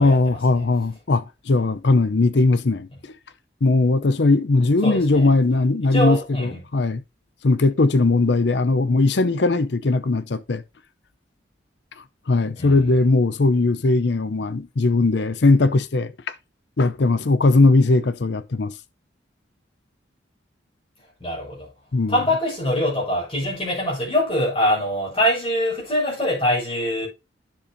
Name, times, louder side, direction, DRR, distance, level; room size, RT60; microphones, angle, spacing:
voice 1, 0.0-3.1 3.6-7.0 7.4-10.6 12.3-16.1 16.8-18.7 21.9-22.2, left 3 dB, 65° left, 0.6 m, -19 dB
voice 2, 4.8-5.3 5.9-6.6 12.6-12.9 21.2-21.7 22.1-27.1, equal, 30° left, 5.4 m, -23 dB
10.5 x 6.8 x 2.7 m
head